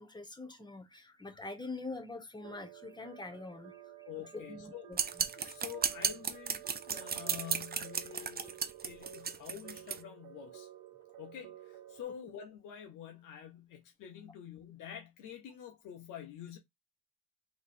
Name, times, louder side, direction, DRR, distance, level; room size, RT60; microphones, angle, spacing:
voice 1, 0.0-3.8 4.3-5.0, left 3 dB, 15° left, 1.2 m, -44 dB
sound 1, 2.4-12.0, right 13 dB, 80° right, 1.1 m, -52 dB
voice 2, 4.0-4.9 5.4-6.6 6.9-10.7 11.2-16.6, left 9 dB, 90° left, 1.1 m, -47 dB
sound 2, 4.9-10.0, right 7 dB, 30° right, 0.6 m, -34 dB
3.3 x 3.1 x 4.2 m
cardioid pair, 90°, 30 cm